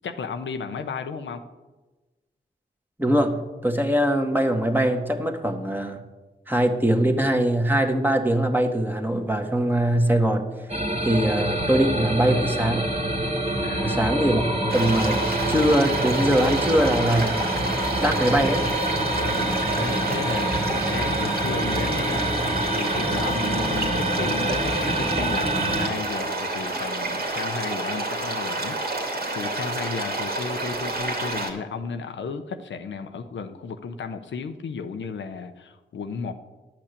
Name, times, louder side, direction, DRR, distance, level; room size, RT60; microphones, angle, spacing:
voice 1, 0.0-1.4 13.6-14.1 19.1-22.4 22.7-36.3, left 5 dB, 90° left, 7 dB, 0.7 m, -34 dB
voice 2, 3.0-6.0 6.5-10.5 11.0-12.9 13.8-14.4 14.7-15.2 15.5-17.6 18.0-18.6, right 1 dB, 10° right, 4 dB, 1.6 m, -22 dB
sound 1, 10.7-25.9, right 1 dB, 35° right, 2.2 m, -26 dB
sound 2, 14.7-31.5, right 2 dB, 60° right, 2.3 m, -29 dB
10.5 x 6.0 x 8.3 m, 1.2 s
cardioid pair, 45°, 19 cm